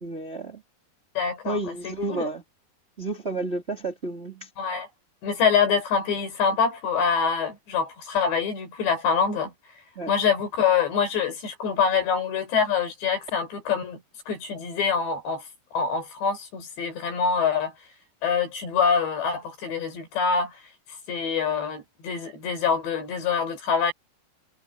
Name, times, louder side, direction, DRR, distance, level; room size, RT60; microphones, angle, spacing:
voice 1, 0.0-0.6 1.4-2.4 3.0-4.5 10.0-10.1, right 2 dB, 20° right, 2.2 m, -31 dB
voice 2, 1.2-2.3 4.6-4.9 5.2-9.5 10.1-14.0 14.3-15.5 15.7-17.7 18.2-20.6 21.1-23.9, left 6 dB, 85° left, 7.4 m, -25 dB
omnidirectional pair, 4.9 m